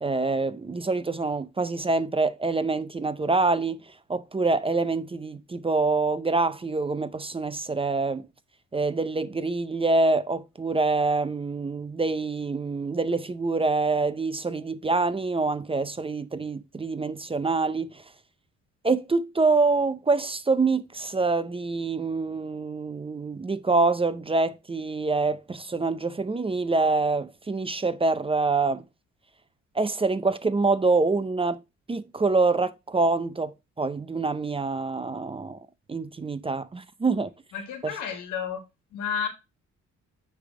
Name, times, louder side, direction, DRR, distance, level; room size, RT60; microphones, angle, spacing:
voice 1, 0.0-3.8 4.1-8.3 8.7-18.0 18.8-28.8 29.7-31.6 31.9-35.6 35.9-37.3 37.8-38.0, right 3 dB, 20° right, 0.5 m, -25 dB
voice 2, 37.5-38.6 38.9-39.3, left 7 dB, 90° left, 1.6 m, -31 dB
9.4 x 3.4 x 3.6 m
cardioid pair, 90°, 30 cm